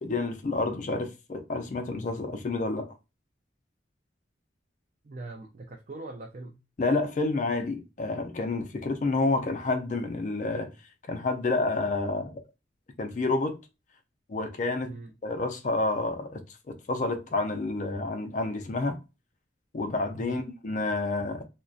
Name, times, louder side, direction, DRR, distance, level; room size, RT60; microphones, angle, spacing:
voice 1, 0.0-2.9 6.8-10.7 11.1-12.4 13.0-13.6 14.3-15.0 15.2-19.0 19.7-21.5, left 3 dB, 40° left, 0.4 m, -29 dB
voice 2, 5.0-6.6 14.8-15.1 20.1-20.4, right 2 dB, 40° right, 0.4 m, -41 dB
2.5 x 2.1 x 2.3 m
head